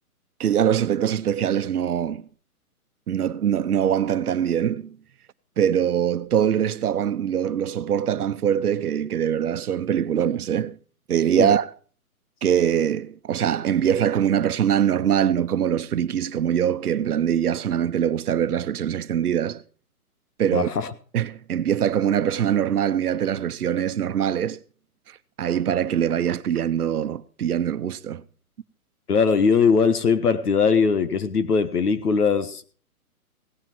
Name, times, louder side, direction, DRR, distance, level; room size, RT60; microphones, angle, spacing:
voice 1, 0.4-2.3 3.1-5.0 5.6-10.8 11.1-11.7 12.4-19.6 20.4-20.7 21.1-24.6 25.4-28.2, right 9 dB, 80° right, 0.9 m, -23 dB
voice 2, 20.5-20.9 29.1-32.6, left 5 dB, 90° left, 1.5 m, -20 dB
17.5 x 9.4 x 4.5 m
hypercardioid pair, 160°, 44 cm